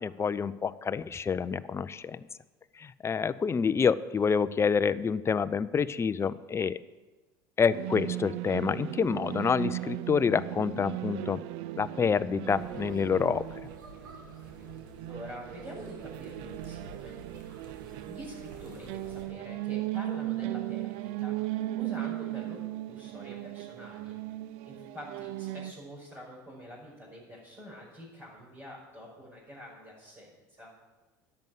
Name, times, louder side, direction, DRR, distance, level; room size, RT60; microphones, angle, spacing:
voice 1, 0.0-2.3 2.8-6.8 7.6-11.4 11.8-13.4, left 6 dB, 25° left, 15 dB, 0.6 m, -27 dB
sound 1, 7.7-25.7, right 16 dB, 65° right, 0.4 m, -37 dB
sound 2, 12.4-19.3, right 2 dB, 85° right, 2.3 m, -50 dB
voice 2, 15.1-17.2 18.1-24.4 24.6-30.7, equal, 25° right, -7 dB, 5.3 m, -46 dB
10.5 x 8.0 x 9.2 m, 1.2 s
hypercardioid pair, 80°, 11 cm